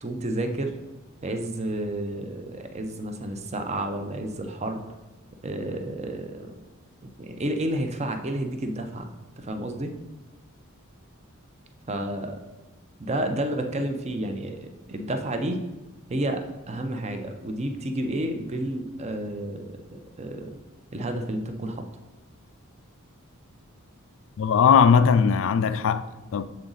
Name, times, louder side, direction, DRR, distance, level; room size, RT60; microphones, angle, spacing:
voice 1, 0.0-0.7 1.2-4.8 5.4-6.5 7.0-9.1 9.4-9.9 11.9-12.4 13.0-15.6 16.1-20.6 20.9-21.8, right 1 dB, 30° right, 0.6 m, -30 dB
voice 2, 24.4-26.4, left 6 dB, 65° left, 0.4 m, -19 dB
7.5 x 4.0 x 3.9 m
head